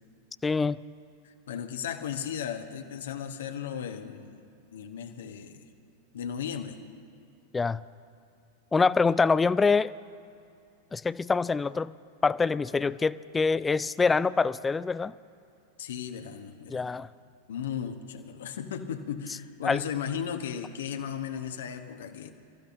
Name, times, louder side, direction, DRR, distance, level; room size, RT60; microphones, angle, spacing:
voice 1, 0.4-0.8 7.5-7.8 8.7-9.9 10.9-11.9 12.2-15.1 16.7-17.1 19.6-19.8, left 4 dB, 15° left, 18 dB, 0.3 m, -25 dB
voice 2, 1.2-4.4 4.7-5.6 6.1-6.8 15.8-16.9 17.5-22.3, left 8 dB, 60° left, 6 dB, 1.2 m, -36 dB
29.0 x 14.5 x 2.7 m, 2.5 s
figure-of-eight pair, 90°, 0 cm